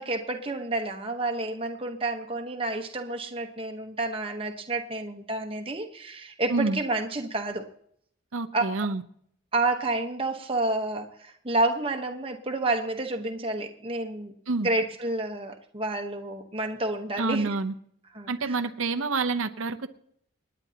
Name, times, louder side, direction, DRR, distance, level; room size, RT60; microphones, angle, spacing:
voice 1, 0.0-7.6 8.5-8.6 9.5-14.3 14.6-17.5 18.1-18.6, right 2 dB, 25° right, 4 dB, 1.2 m, -29 dB
voice 2, 8.3-9.0 14.5-14.7 17.2-17.7 18.3-19.9, right 3 dB, 85° right, 8 dB, 0.8 m, -28 dB
28.5 x 9.7 x 2.9 m, 0.65 s
head